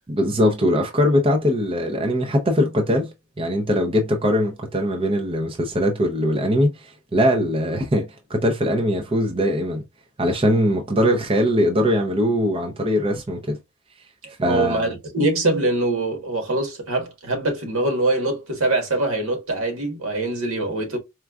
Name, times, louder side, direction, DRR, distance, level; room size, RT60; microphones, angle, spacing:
voice 1, 0.1-9.8 10.2-13.6 14.4-14.9, equal, 25° right, 0.6 m, -21 dB
voice 2, 14.2-21.0, right 2 dB, 80° right, 1.5 m, -23 dB
4.4 x 2.3 x 2.3 m
head